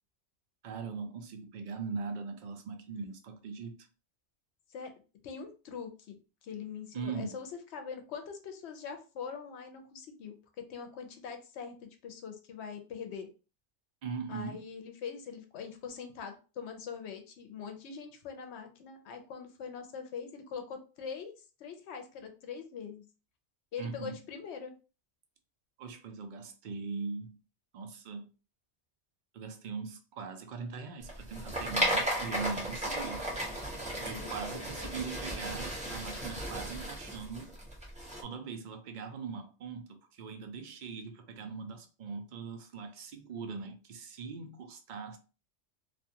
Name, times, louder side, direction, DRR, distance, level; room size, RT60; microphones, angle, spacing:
voice 1, 0.6-3.9 6.9-7.4 14.0-14.7 23.8-24.2 25.8-27.4 27.7-28.3 29.3-33.3 34.0-37.5 38.2-45.2, right 5 dB, 60° right, 0.5 m, -41 dB
voice 2, 5.2-7.5 7.7-10.4 10.7-13.3 14.3-21.3 21.6-23.0 23.7-24.7 33.9-34.9, left 6 dB, 75° left, 0.9 m, -43 dB
sound 1, 31.0-38.2, equal, 5° right, 0.7 m, -35 dB
2.5 x 2.3 x 2.7 m
omnidirectional pair, 1.2 m